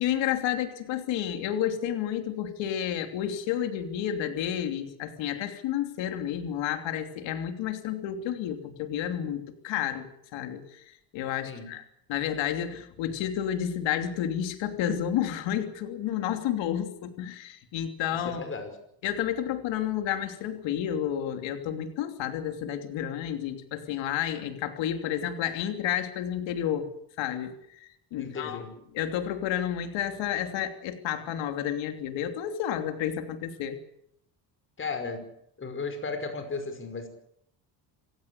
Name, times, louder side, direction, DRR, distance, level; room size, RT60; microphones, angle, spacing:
voice 1, 0.0-10.1 10.3-10.6 11.1-11.8 12.1-18.4 19.0-26.9 27.2-28.6 28.9-33.8, left 10 dB, 85° left, 7 dB, 3.1 m, -31 dB
voice 2, 18.3-18.7 28.2-28.8 34.8-35.3 35.6-37.1, left 4 dB, 25° left, 7 dB, 5.3 m, -35 dB
26.5 x 17.0 x 8.3 m, 0.72 s
cardioid pair, 155°, 44 cm